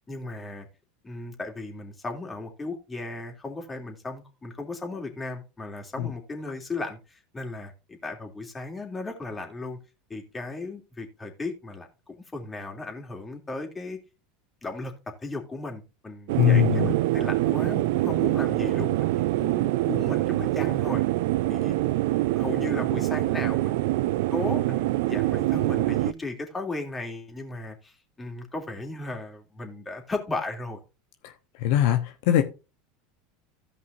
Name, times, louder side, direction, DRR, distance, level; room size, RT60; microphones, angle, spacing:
voice 1, 0.1-0.7 1.0-9.8 10.1-14.0 14.6-14.9 15.2-21.0 21.5-21.8 22.1-30.8, left 2 dB, 20° left, 3.0 m, -36 dB
sound 1, 16.3-26.1, right 17 dB, 70° right, 0.4 m, -25 dB
voice 2, 16.4-16.9 31.6-32.4, left 11 dB, 65° left, 1.0 m, -21 dB
16.5 x 5.5 x 2.7 m
hypercardioid pair, 85°, 0 cm